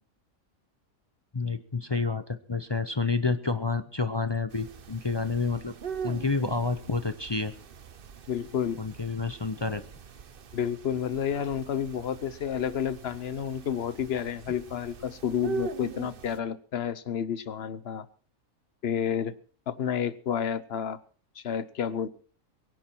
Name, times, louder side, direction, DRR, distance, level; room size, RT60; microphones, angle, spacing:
voice 1, 1.3-5.7 6.0-7.5 8.8-9.8, left 4 dB, 30° left, 11 dB, 0.5 m, -29 dB
sound 1, 4.5-16.4, right 5 dB, 45° right, 0.9 m, -41 dB
voice 2, 8.3-8.8 10.5-18.1 18.8-19.3 19.7-21.0 21.4-22.1, left 8 dB, 50° left, 16 dB, 1.0 m, -30 dB
23.0 x 11.0 x 4.5 m, 0.41 s
omnidirectional pair, 1.4 m